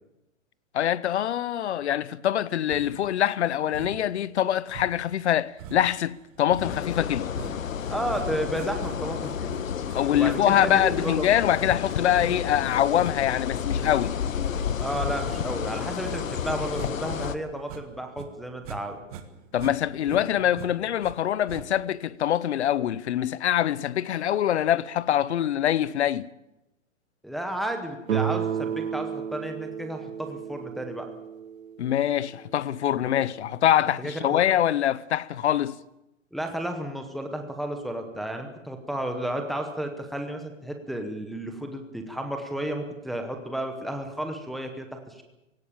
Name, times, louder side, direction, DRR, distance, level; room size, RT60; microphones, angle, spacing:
voice 1, 0.7-7.3 9.9-14.1 19.5-26.3 31.8-35.8, left 11 dB, 60° left, 0.9 m, -24 dB
sound 1, 2.7-3.1 3.7-4.2 4.7-17.3 17.6-18.8 19.1-21.2 21.5-22.0, right 8 dB, 30° right, 1.6 m, -44 dB
sound 2, 6.6-17.4, left 8 dB, 85° left, 1.5 m, -31 dB
voice 2, 7.9-9.6 10.1-11.3 14.8-19.0 27.2-31.1 33.0-33.1 34.0-34.4 36.3-45.2, right 1 dB, ahead, 1.0 m, -32 dB
Guitar, 28.1-32.9, right 9 dB, 90° right, 0.9 m, -32 dB
17.5 x 17.0 x 8.8 m
hypercardioid pair, 165°, 39 cm